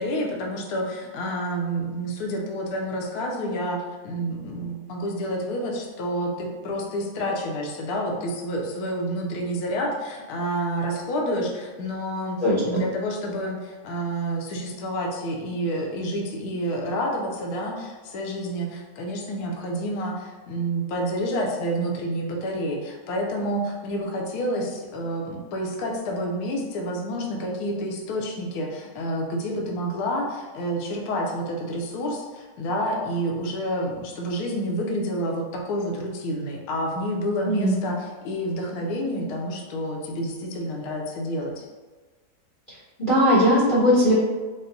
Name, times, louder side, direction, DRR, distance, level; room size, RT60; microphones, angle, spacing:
voice 1, 0.0-41.6, equal, 75° left, 0 dB, 1.1 m, -29 dB
voice 2, 12.4-12.8 37.4-37.7 43.0-44.1, equal, 45° left, -9 dB, 0.7 m, -19 dB
4.2 x 2.1 x 3.8 m, 1.3 s
omnidirectional pair, 1.7 m